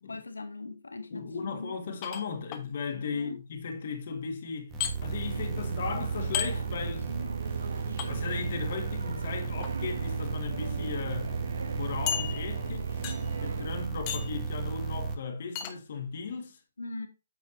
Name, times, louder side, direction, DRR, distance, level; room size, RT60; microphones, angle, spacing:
voice 1, 0.1-1.7 3.1-3.4 16.8-17.1, left 3 dB, 70° left, 1.5 m, -40 dB
voice 2, 1.1-4.7 5.0-7.1 8.1-11.4 11.7-13.0 13.4-16.6, left 5 dB, 45° left, 1.7 m, -36 dB
sound 1, 2.0-2.6 4.8-4.9 6.3-6.5 8.0-8.1 9.4-9.7 10.5-10.6 10.9-11.0 12.1-12.7 13.0-13.4 14.1-14.4 15.6-15.8, left 10 dB, 25° left, 1.1 m, -33 dB
sound 2, 4.7-15.1, right 5 dB, 20° right, 1.3 m, -34 dB
sound 3, 5.3-13.9, right 5 dB, 60° right, 0.8 m, -39 dB
9.1 x 7.2 x 2.7 m
figure-of-eight pair, 130°, 0 cm